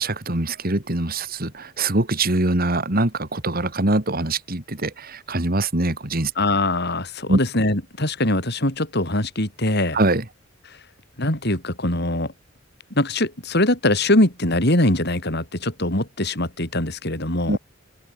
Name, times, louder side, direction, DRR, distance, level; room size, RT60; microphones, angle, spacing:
voice 1, 0.0-6.3 7.3-7.4 9.9-10.2 17.5-17.6, right 2 dB, 50° right, 2.9 m, -23 dB
voice 2, 6.4-10.0 11.2-12.3 12.9-17.6, left 1 dB, 55° left, 7.3 m, -22 dB
open air
head